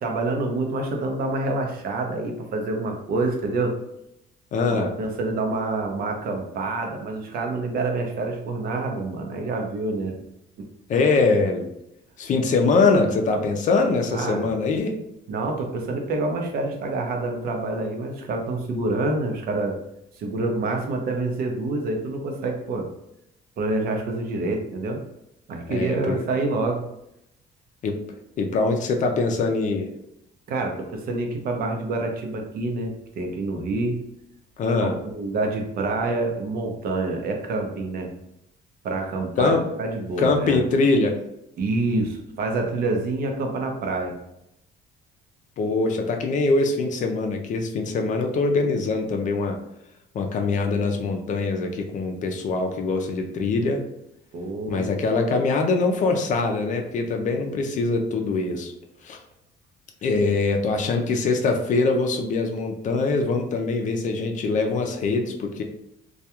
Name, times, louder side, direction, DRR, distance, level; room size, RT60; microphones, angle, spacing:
voice 1, 0.0-3.7 4.7-10.1 14.1-14.5 15.3-19.8 20.2-22.9 23.6-25.0 25.5-26.8 30.5-34.0 34.8-38.1 38.8-39.5 39.8-40.6 41.6-44.1 54.3-55.0, right 2 dB, 60° right, 3 dB, 0.6 m, -27 dB
voice 2, 4.5-4.9 10.9-11.7 12.2-15.0 25.7-26.3 27.8-28.0 28.4-29.9 34.6-34.9 39.4-39.7 40.2-41.2 45.6-49.6 50.1-53.8 54.7-58.7 59.0-59.2 60.0-65.6, left 3 dB, 50° left, 3 dB, 0.4 m, -23 dB
2.3 x 2.2 x 2.8 m, 0.81 s
cardioid pair, 110°, 17 cm